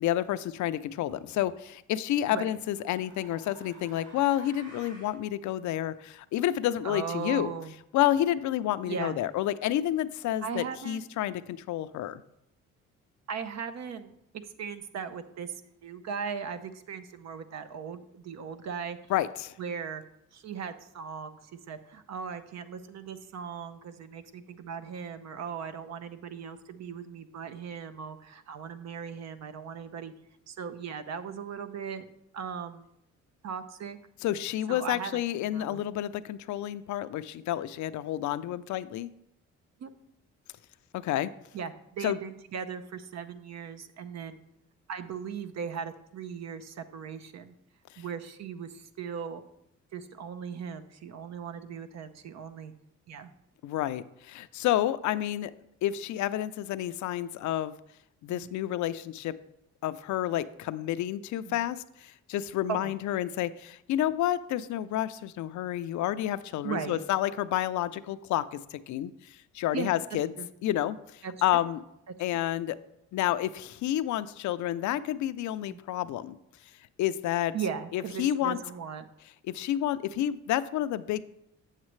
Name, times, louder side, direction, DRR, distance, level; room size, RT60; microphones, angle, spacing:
voice 1, 0.0-7.5 7.9-12.2 19.1-19.6 34.2-39.1 40.9-41.3 42.0-42.2 53.6-55.5 55.8-57.7 58.2-59.4 59.8-70.3 70.6-71.8 72.2-72.8 73.1-76.4 77.0-77.6 77.9-78.6 79.5-81.2, left 12 dB, 70° left, 14 dB, 0.5 m, -30 dB
sound 1, 1.1-1.4 2.5-5.2, right 2 dB, 80° right, 1.8 m, -52 dB
voice 2, 6.8-7.7 8.9-9.2 10.4-11.1 13.3-15.6 15.8-19.0 19.6-20.0 20.3-21.4 21.7-30.1 30.5-32.1 32.3-32.9 33.4-34.0 34.7-35.2 35.5-35.8 39.8-39.9 41.5-44.4 44.9-47.5 48.0-49.4 49.9-52.7 53.1-53.3 58.3-58.5 61.4-61.6 62.7-62.9 66.6-67.0 69.7-69.9 70.4-70.5 71.2-71.3 75.7-75.8 77.5-79.1, right 6 dB, 60° right, 10 dB, 0.7 m, -38 dB
8.0 x 7.4 x 3.1 m, 0.81 s
cardioid pair, 90°, 30 cm